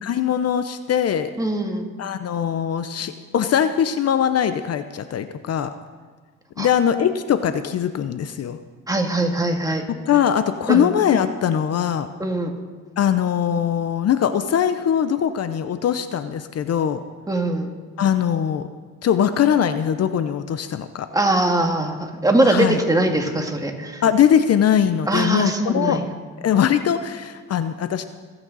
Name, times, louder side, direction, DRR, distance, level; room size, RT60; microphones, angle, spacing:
voice 1, 0.0-1.3 2.0-5.7 6.6-8.6 9.9-12.1 13.0-17.0 18.0-18.7 19.0-21.1 22.4-22.8 24.0-26.0 26.4-28.1, left 9 dB, 55° left, 11 dB, 0.7 m, -21 dB
voice 2, 1.4-1.9 6.6-6.7 8.9-9.8 10.7-10.9 12.2-12.6 17.3-17.7 21.1-24.0 25.1-26.0, right 1 dB, 10° right, 3 dB, 1.9 m, -21 dB
25.0 x 8.9 x 4.0 m, 1.5 s
cardioid pair, 90°, 30 cm